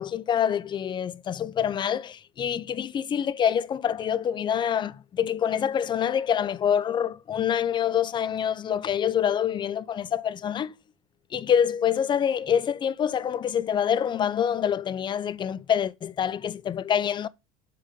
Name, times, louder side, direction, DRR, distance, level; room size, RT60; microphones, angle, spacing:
voice 1, 0.0-10.7 11.3-17.3, left 9 dB, 25° left, 0.4 m, -26 dB
7.5 x 3.6 x 4.9 m
supercardioid pair, 105°, 19 cm